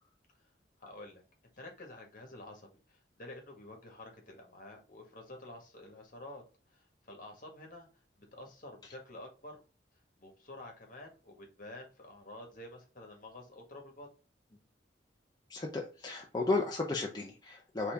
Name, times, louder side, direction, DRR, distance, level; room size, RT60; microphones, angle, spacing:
voice 1, 0.8-1.2 1.6-6.4 6.7-7.9 8.1-9.6 10.2-14.1, left 1 dB, 50° left, 2 dB, 1.6 m, -49 dB
voice 2, 15.5-17.9, left 3 dB, 25° left, -1 dB, 0.7 m, -34 dB
4.3 x 3.5 x 3.4 m, 0.34 s
head